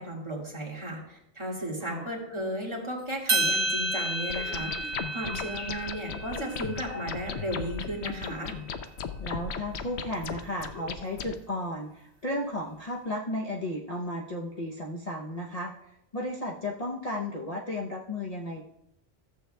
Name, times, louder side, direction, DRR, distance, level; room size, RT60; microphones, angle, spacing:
voice 1, 0.0-8.5, equal, 25° right, -3 dB, 1.9 m, -35 dB
voice 2, 1.8-2.1 9.2-18.6, left 1 dB, 35° left, -2 dB, 0.8 m, -34 dB
sound 1, 3.3-7.7, right 2 dB, 70° right, 1.8 m, -31 dB
sound 2, 4.3-11.3, left 6 dB, 70° left, 0.9 m, -37 dB
14.5 x 7.5 x 2.2 m, 0.79 s
omnidirectional pair, 1.2 m